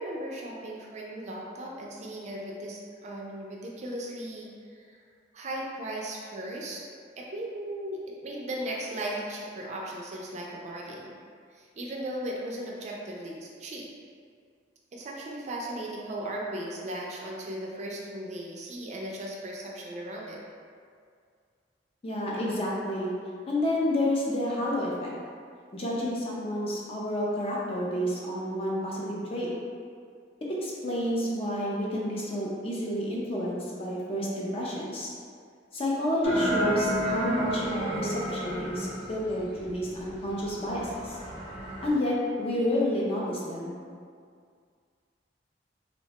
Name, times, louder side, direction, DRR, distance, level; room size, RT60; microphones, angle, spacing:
voice 1, 0.0-4.5 4.7-5.0 5.3-6.8 7.2-11.1 11.5-13.9 14.9-20.4, right 1 dB, 40° right, -2 dB, 0.4 m, -37 dB
voice 2, 22.0-23.1 23.5-25.1 25.7-29.5 30.6-35.1 35.7-41.2 41.8-43.8, left 1 dB, 35° left, -5 dB, 0.5 m, -30 dB
sound 1, 36.2-41.9, equal, 85° left, 0.9 m, -32 dB
3.0 x 2.1 x 2.8 m, 2.1 s
head